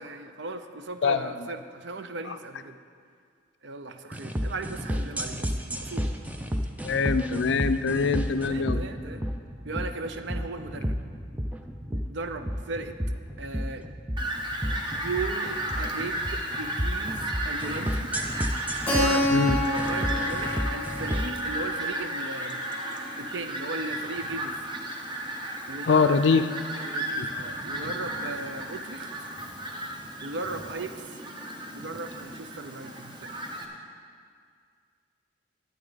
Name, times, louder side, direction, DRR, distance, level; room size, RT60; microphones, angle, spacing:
voice 1, 0.0-2.8 3.6-6.1 8.4-9.2 9.7-11.0 11.9-13.0 13.4-13.9 14.9-18.1 18.9-22.6 23.2-24.6 25.7-26.5 26.8-29.1 30.2-31.2 31.7-33.3, right 3 dB, 65° right, 8 dB, 0.6 m, -37 dB
voice 2, 1.0-1.3 2.3-2.4 6.8-8.9 19.3-19.6 25.9-26.5 27.2-27.3, left 4 dB, 65° left, 11 dB, 0.4 m, -23 dB
sound 1, 4.1-21.4, equal, 10° right, 0.4 m, -31 dB
Fowl, 14.2-33.7, right 1 dB, 25° right, 0.8 m, -34 dB
Keyboard (musical), 18.9-23.4, left 1 dB, 10° left, 1.8 m, -30 dB
12.5 x 8.7 x 4.0 m, 2.1 s
head